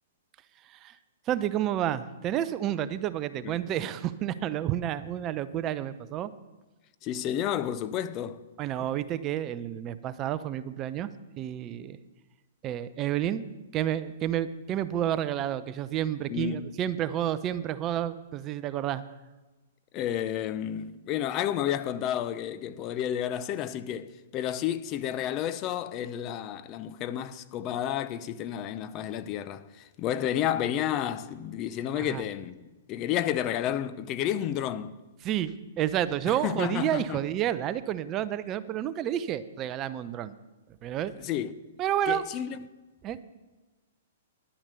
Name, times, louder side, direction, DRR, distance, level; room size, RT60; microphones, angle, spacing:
voice 1, 1.3-6.3 8.6-11.1 11.4-12.0 12.6-13.4 13.7-19.0 32.0-32.2 35.2-40.3 40.8-41.1 41.8-42.2 43.0-43.2, right 11 dB, 30° right, 0.6 m, -30 dB
voice 2, 7.0-8.4 16.3-16.7 19.9-34.9 36.3-37.2 41.2-41.5 42.1-42.7, left 10 dB, 35° left, 0.6 m, -31 dB
11.0 x 8.8 x 6.8 m
hypercardioid pair, 125°, 0 cm